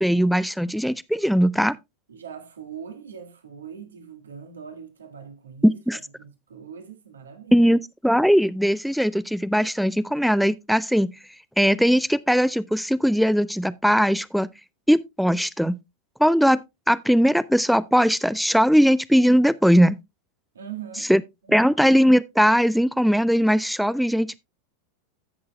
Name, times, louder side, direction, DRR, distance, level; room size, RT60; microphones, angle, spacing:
voice 1, 0.0-1.8 5.6-6.0 7.5-11.1 11.6-14.5 14.9-15.8 16.2-16.6 16.9-20.0 21.1-21.2 21.5-24.4, equal, ahead, 0.4 m, -19 dB
voice 2, 2.1-7.7 20.5-21.1 21.4-21.7, right 8 dB, 80° right, 1.6 m, -41 dB
15.5 x 6.2 x 2.3 m
figure-of-eight pair, 85°, 0 cm